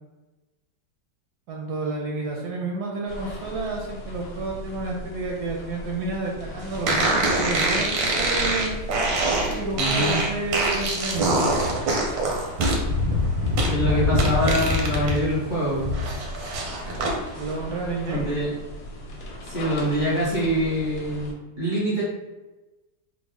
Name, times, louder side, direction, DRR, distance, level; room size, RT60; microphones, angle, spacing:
voice 1, 1.5-8.8 9.3-11.4 17.4-18.3, right 3 dB, 70° right, -1 dB, 1.0 m, -30 dB
sound 1, 3.1-21.3, equal, 70° left, 1.3 m, -38 dB
sound 2, 6.9-15.2 15.5-17.1, right 1 dB, 90° right, 1.4 m, -24 dB
voice 2, 9.8-10.2 13.7-16.0 18.1-18.5 19.4-22.0, equal, 40° left, -8 dB, 0.7 m, -25 dB
3.6 x 2.1 x 3.4 m, 1.1 s
omnidirectional pair, 2.0 m